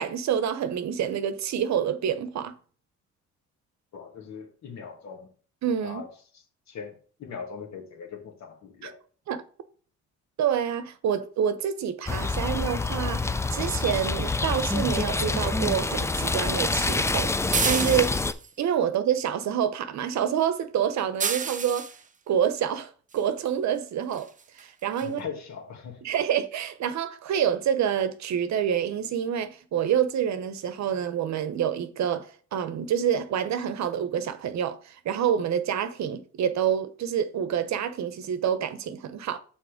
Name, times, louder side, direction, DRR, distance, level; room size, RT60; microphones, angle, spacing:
voice 1, 0.0-2.5 5.6-6.0 8.8-8.9 9.3-9.4 10.4-18.2 18.6-21.9 22.3-24.3 24.6-25.2 26.0-39.4, right 9 dB, 65° right, 0.8 m, -27 dB
voice 2, 3.9-5.3 5.8-9.0 25.0-26.0, left 6 dB, 65° left, 2.0 m, -40 dB
sound 1, 12.1-18.3, left 3 dB, 10° left, 0.4 m, -27 dB
sound 2, 17.5-18.5 21.2-22.0 23.5-23.6 24.1-24.3 24.6-24.7 25.0-25.1, right 5 dB, 25° right, 0.6 m, -29 dB
6.1 x 4.1 x 5.0 m
cardioid pair, 90°, 30 cm